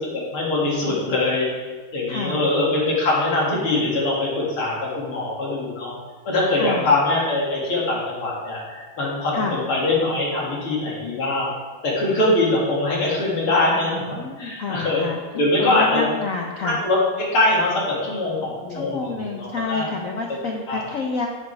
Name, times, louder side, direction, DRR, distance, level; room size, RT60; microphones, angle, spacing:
voice 1, 0.0-1.5 1.9-5.9 6.3-11.5 11.8-14.0 14.4-15.1 15.3-16.1 16.6-19.9 20.3-20.4 20.7-20.9, left 2 dB, 85° left, -5 dB, 3.3 m, -22 dB
voice 2, 2.1-2.4 6.5-6.9 9.3-9.6 14.1-15.2 15.6-16.8 18.7-21.3, left 4 dB, 60° left, 0 dB, 0.9 m, -29 dB
11.0 x 7.9 x 3.4 m, 1.4 s
omnidirectional pair, 2.3 m